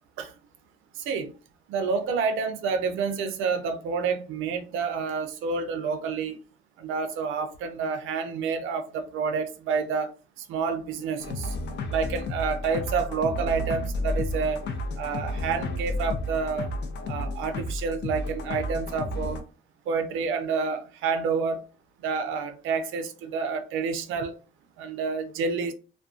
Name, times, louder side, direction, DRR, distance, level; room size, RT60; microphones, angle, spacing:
voice 1, 1.0-1.3 1.7-6.4 6.8-10.1 10.4-11.6 11.9-14.6 15.0-16.7 17.1-19.4 19.9-21.6 22.0-24.3 24.8-25.7, right 5 dB, 90° right, 0.5 m, -29 dB
sound 1, 11.2-19.4, left 1 dB, 60° left, 0.5 m, -32 dB
2.4 x 2.2 x 2.3 m
cardioid pair, 90°, 20 cm